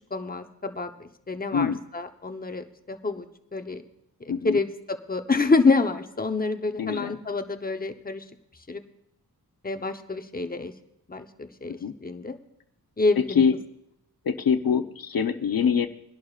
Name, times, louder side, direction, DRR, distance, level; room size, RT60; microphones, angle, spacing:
voice 1, 0.1-0.9 1.3-3.3 3.5-3.8 4.4-4.7 5.1-8.2 8.7-8.8 9.6-10.7 11.1-12.4 13.0-13.4, left 3 dB, 25° left, 7 dB, 0.9 m, -27 dB
voice 2, 1.5-1.8 4.3-4.6 6.8-7.2 11.7-11.9 13.3-13.6 14.2-15.9, left 6 dB, 65° left, 8 dB, 0.9 m, -24 dB
23.0 x 11.0 x 2.4 m, 0.76 s
wide cardioid pair, 80°, 38 cm